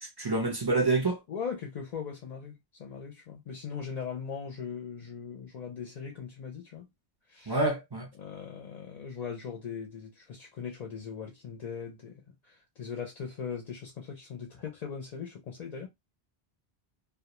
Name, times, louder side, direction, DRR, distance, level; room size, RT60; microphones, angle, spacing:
voice 1, 0.0-1.2 7.5-8.1, right 3 dB, 30° right, 0.5 m, -27 dB
voice 2, 1.3-6.9 7.3-7.6 8.2-12.1 12.5-15.9, left 6 dB, 55° left, 0.5 m, -39 dB
2.2 x 2.1 x 2.9 m
omnidirectional pair, 1.0 m